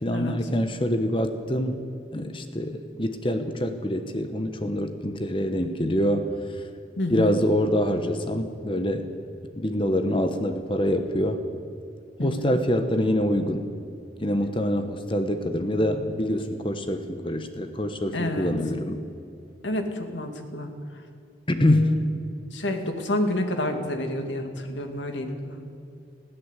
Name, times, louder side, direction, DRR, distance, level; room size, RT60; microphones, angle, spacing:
voice 1, 0.0-1.8 2.1-6.6 7.1-9.1 9.5-11.4 12.2-13.7 14.2-19.0 21.5-22.0, equal, 30° left, 8 dB, 1.1 m, -25 dB
voice 2, 7.0-7.4 12.2-12.6 18.1-18.5 19.6-20.7 21.6-22.0 22.5-25.7, left 1 dB, 85° left, 5 dB, 2.4 m, -29 dB
20.5 x 16.0 x 8.3 m, 2.6 s
head